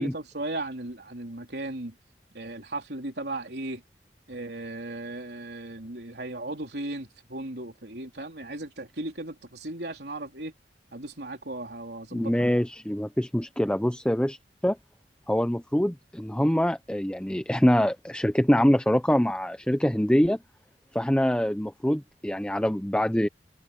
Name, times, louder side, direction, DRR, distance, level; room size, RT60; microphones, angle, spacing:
voice 1, 0.0-1.9 2.3-3.8 4.3-10.5 10.9-12.3, right 2 dB, 65° right, 4.0 m, -36 dB
voice 2, 12.1-14.4 14.6-14.8 15.3-20.4 20.9-23.3, equal, 5° left, 0.7 m, -24 dB
head